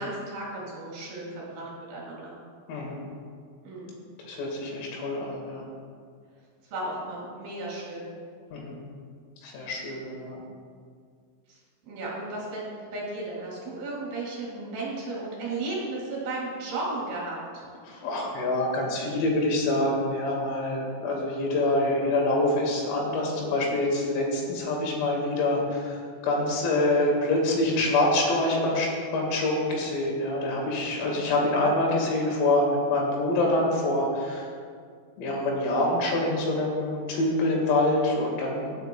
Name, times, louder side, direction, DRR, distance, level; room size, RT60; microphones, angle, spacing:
voice 1, 0.0-2.3 3.6-4.0 6.7-8.1 11.5-11.6 11.9-17.6 30.9-31.2, right 2 dB, 60° right, -4 dB, 3.7 m, -34 dB
voice 2, 2.7-3.0 4.2-5.6 8.5-8.8 9.4-10.4 17.9-34.5 35.2-38.8, left 2 dB, 80° left, -1 dB, 4.4 m, -26 dB
17.0 x 9.0 x 2.2 m, 2.1 s
omnidirectional pair, 6.0 m